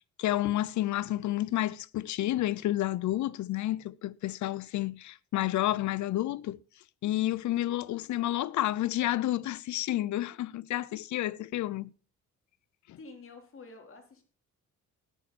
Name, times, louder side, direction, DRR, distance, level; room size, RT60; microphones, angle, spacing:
voice 1, 0.2-6.6 7.0-11.9 12.9-13.0, left 14 dB, 70° left, 0.6 m, -30 dB
voice 2, 13.0-14.2, left 3 dB, 45° left, 3.7 m, -49 dB
14.0 x 9.7 x 4.2 m
cardioid pair, 90°, 30 cm